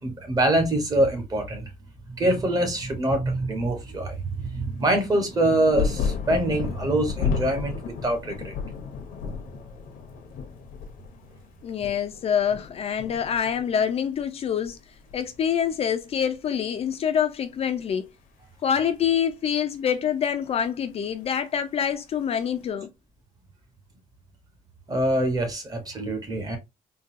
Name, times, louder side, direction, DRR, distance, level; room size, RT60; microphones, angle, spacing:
voice 1, 0.0-1.7 2.2-8.5 24.9-26.6, right 1 dB, 25° right, 0.9 m, -24 dB
sound 1, 5.2-14.3 14.5-15.4 16.3-16.4, left 6 dB, 75° left, 0.8 m, -33 dB
voice 2, 11.6-14.8 15.1-18.1 18.6-22.9, left 8 dB, 45° left, 0.4 m, -26 dB
3.7 x 2.3 x 2.5 m
cardioid pair, 155°, 14 cm